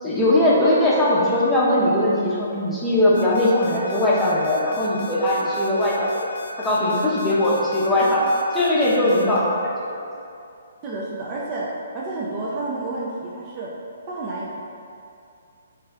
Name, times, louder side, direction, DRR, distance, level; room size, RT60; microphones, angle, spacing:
voice 1, 0.0-6.3 6.6-10.1, left 1 dB, 5° left, -8 dB, 0.7 m, -20 dB
sound 1, 3.1-9.4, left 3 dB, 65° left, 0.5 m, -38 dB
voice 2, 10.8-13.7 14.1-14.6, right 2 dB, 30° right, -5 dB, 0.4 m, -30 dB
3.4 x 3.3 x 3.3 m, 2.5 s
hypercardioid pair, 145°, 0 cm